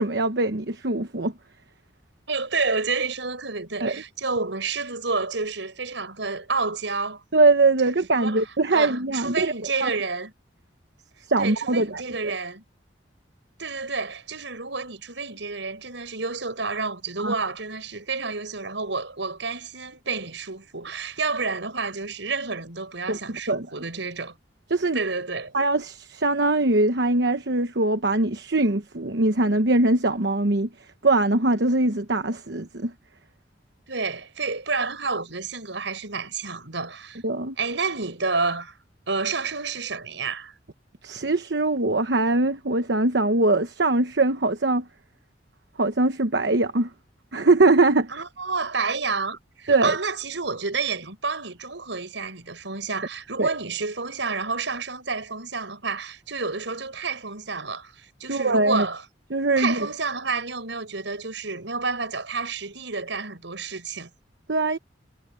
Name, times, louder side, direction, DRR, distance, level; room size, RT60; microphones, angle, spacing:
voice 1, 0.0-1.3 3.8-4.0 7.3-9.5 9.8-9.9 11.3-12.3 17.2-17.3 23.1-23.7 24.7-25.0 25.5-30.7 31.0-32.9 37.2-37.5 41.0-44.8 45.8-46.9 47.3-48.1 49.7-50.0 53.4-53.5 58.3-58.9 59.3-59.8 64.5-64.8, right 2 dB, 65° right, 1.1 m, -22 dB
voice 2, 2.3-7.2 8.1-8.4 8.7-10.3 11.4-12.6 13.6-24.4 24.9-25.5 33.9-37.2 37.6-38.8 39.1-40.5 48.1-59.0 59.6-64.1, right 4 dB, 80° right, 5.5 m, -29 dB
head